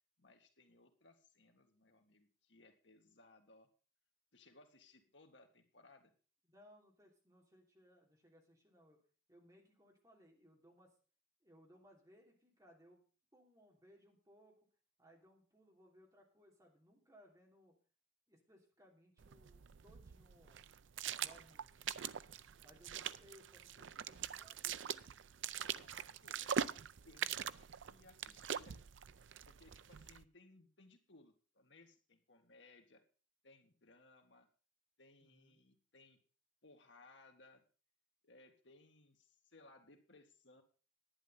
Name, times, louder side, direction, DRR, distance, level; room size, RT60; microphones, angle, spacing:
voice 1, 0.2-3.7 4.3-6.1 25.7-28.8 29.1-29.2 29.5-33.0 33.4-34.5 35.0-36.2 36.6-37.6 38.2-40.6, left 2 dB, 75° left, 4 dB, 1.9 m, -64 dB
voice 2, 6.5-9.0 9.3-10.9 11.4-13.0 13.3-14.7 15.0-17.7 18.3-20.6 21.2-21.8 22.6-25.3 35.2-35.6, equal, 20° right, 0 dB, 3.1 m, -65 dB
sound 1, 19.2-30.2, right 8 dB, 85° right, 0.5 m, -43 dB
11.0 x 9.6 x 5.6 m, 0.37 s
head